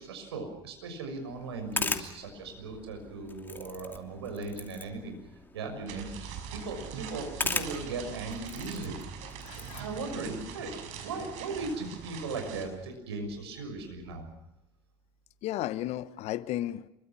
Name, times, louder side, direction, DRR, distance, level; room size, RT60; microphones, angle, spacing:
voice 1, 0.0-5.1 5.5-8.9 9.5-14.3, right 3 dB, 80° right, 6.3 m, -38 dB
sound 1, 1.2-12.2, left 3 dB, 15° left, 2.9 m, -40 dB
sound 2, 5.9-12.6, right 7 dB, 60° right, 5.8 m, -43 dB
voice 2, 9.4-9.8 15.4-16.9, left 14 dB, 55° left, 1.2 m, -34 dB
27.0 x 23.5 x 6.2 m
hypercardioid pair, 70°, 13 cm